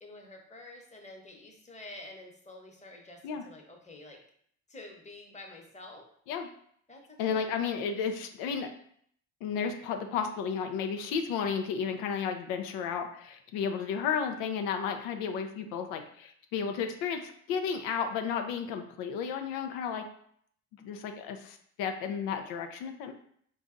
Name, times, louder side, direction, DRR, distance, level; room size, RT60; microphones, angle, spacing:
voice 1, 0.0-4.2 4.7-6.0 6.9-8.2, left 2 dB, 20° left, 1 dB, 1.0 m, -49 dB
voice 2, 7.2-8.7 9.4-20.1 20.8-23.1, left 6 dB, 90° left, 5 dB, 0.5 m, -33 dB
4.0 x 2.3 x 3.7 m, 0.64 s
supercardioid pair, 80°, 35 cm